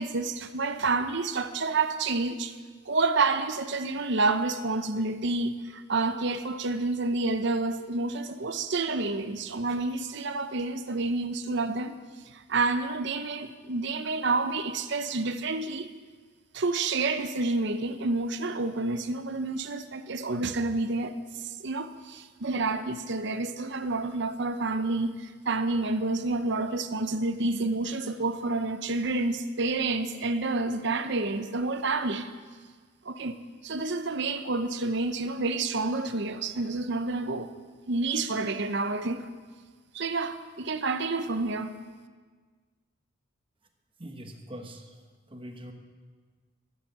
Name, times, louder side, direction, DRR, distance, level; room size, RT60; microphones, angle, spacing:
voice 1, 0.0-2.5 2.9-11.9 12.3-15.9 16.5-21.1 21.4-32.3 33.0-33.3 33.6-37.5 37.9-39.3 39.9-41.7, right 3 dB, 55° right, 0.8 m, -29 dB
voice 2, 44.0-44.8 45.3-45.7, equal, 25° right, 1.1 m, -42 dB
14.0 x 8.2 x 7.5 m
head